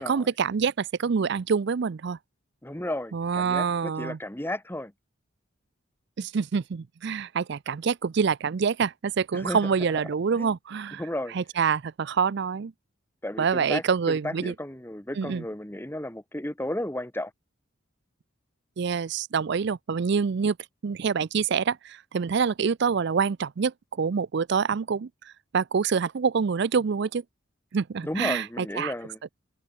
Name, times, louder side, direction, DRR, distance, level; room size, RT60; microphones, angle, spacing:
voice 1, 0.0-2.2 3.1-4.2 6.2-11.0 11.3-12.7 13.4-14.5 15.2-15.4 18.8-20.6 20.8-25.1 25.5-27.2 27.7-28.9, right 6 dB, 55° right, 0.4 m, -26 dB
voice 2, 2.6-4.9 9.3-9.6 9.9-10.0 10.4-10.5 11.0-11.3 13.2-17.3 28.0-29.2, left 1 dB, 10° left, 1.1 m, -33 dB
head